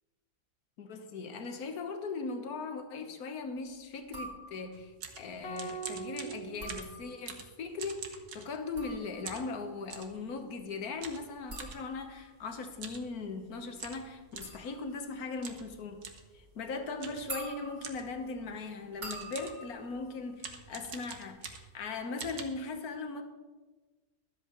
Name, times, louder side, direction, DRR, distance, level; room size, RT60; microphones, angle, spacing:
voice 1, 0.8-16.1 16.3-23.2, left 4 dB, 70° left, 5 dB, 1.6 m, -39 dB
sound 1, 4.1-4.9 6.4-7.5 8.5-21.2 21.5-22.0, right 2 dB, 55° right, 3.9 m, -48 dB
sound 2, 4.7-8.9 9.3-10.2 11.0-11.8 12.7-13.1 13.4-13.5 13.8-14.6 15.4-15.7 16.0-16.3 17.0-17.3 17.8-18.2 18.7-18.8 19.1-19.7 20.4-21.8 22.2-22.4, right 5 dB, 85° right, 1.7 m, -45 dB
sound 3, 5.4-7.8, right 5 dB, 45° left, 1.1 m, -43 dB
23.5 x 8.0 x 3.1 m, 1.3 s
omnidirectional pair, 1.6 m